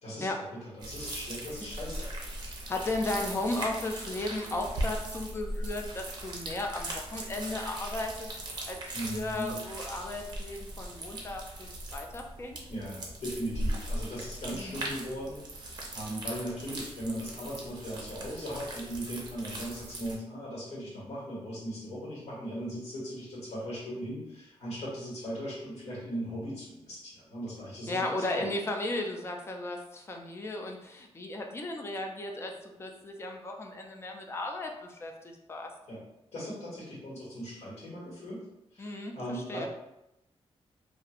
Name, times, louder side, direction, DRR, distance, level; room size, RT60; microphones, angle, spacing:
voice 1, 0.0-2.1 8.9-9.5 12.7-15.4 15.9-28.5 35.9-36.0 36.3-38.4 38.7-39.7, equal, 80° left, -7 dB, 1.3 m, -38 dB
sound 1, 0.8-20.2, right 1 dB, 40° right, 0.5 m, -39 dB
voice 2, 2.7-8.3 8.7-12.6 14.5-14.8 27.9-35.7 38.8-39.7, left 2 dB, 25° left, 2 dB, 0.3 m, -35 dB
3.0 x 2.5 x 2.4 m, 0.88 s
wide cardioid pair, 170°, 11 cm